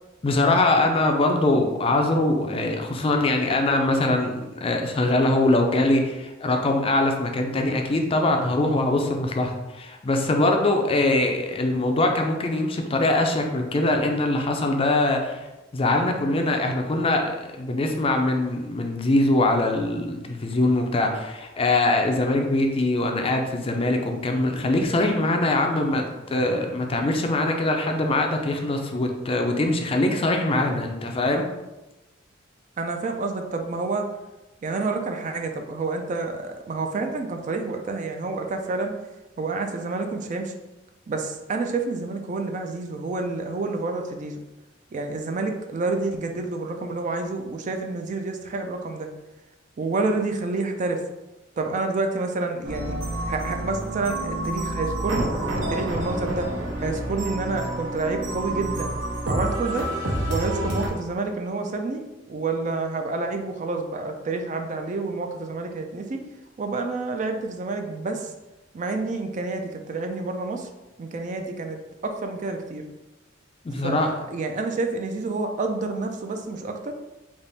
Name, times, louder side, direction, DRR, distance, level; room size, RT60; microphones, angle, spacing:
voice 1, 0.2-15.5 15.7-17.3 17.6-31.4 73.6-74.1, left 2 dB, 30° left, 3 dB, 0.4 m, -22 dB
voice 2, 32.8-34.1 34.6-39.0 39.4-40.5 41.1-44.4 44.9-49.1 49.8-51.0 51.6-53.0 53.3-56.5 56.8-58.9 59.3-59.9 60.3-66.2 66.6-68.3 68.7-70.7 71.0-72.8 73.8-76.9, right 3 dB, 40° right, 5 dB, 0.3 m, -28 dB
sound 1, 52.6-60.9, right 1 dB, 75° right, 0.8 m, -28 dB
3.4 x 2.5 x 4.0 m, 1.0 s
head